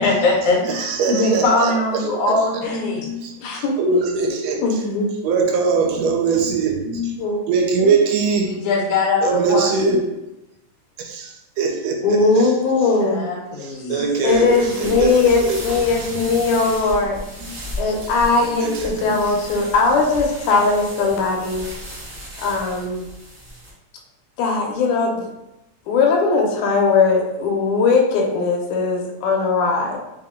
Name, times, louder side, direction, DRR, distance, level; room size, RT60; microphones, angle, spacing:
voice 1, 0.0-0.8 1.1-3.1 8.4-10.0 13.0-14.0, left 3 dB, 60° left, -4 dB, 2.1 m, -21 dB
voice 2, 0.6-4.8 5.2-8.6 9.2-10.1 11.0-12.6 13.6-19.4 20.0-20.1 20.8-20.9 21.8-21.9, right 4 dB, 75° right, 1 dB, 1.7 m, -23 dB
voice 3, 3.4-3.8 4.6-5.1 7.2-7.4 7.8-8.0 12.0-13.3 14.2-17.2 17.8-21.7 22.4-23.1 24.4-25.3 25.9-30.0, left 4 dB, 85° left, 1 dB, 2.2 m, -19 dB
sound 1, 14.2-23.7, equal, 45° right, 1.0 m, -35 dB
5.6 x 2.2 x 3.5 m, 0.93 s
omnidirectional pair, 3.4 m